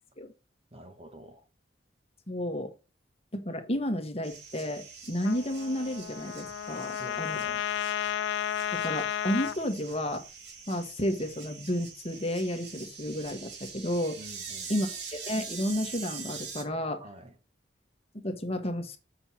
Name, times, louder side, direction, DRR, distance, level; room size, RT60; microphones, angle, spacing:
voice 1, 0.7-1.5 6.8-7.7 14.2-14.7 17.0-17.3, right 1 dB, 35° right, 1.5 m, -48 dB
voice 2, 2.3-2.7 3.3-7.4 8.7-10.3 10.7-14.2 14.7-14.9 15.2-17.0 18.2-19.0, equal, 35° left, 1.5 m, -32 dB
sound 1, 4.2-16.6, right 5 dB, 70° right, 2.6 m, -44 dB
Trumpet, 5.2-9.6, left 10 dB, 80° left, 0.3 m, -33 dB
7.7 x 6.2 x 4.3 m
head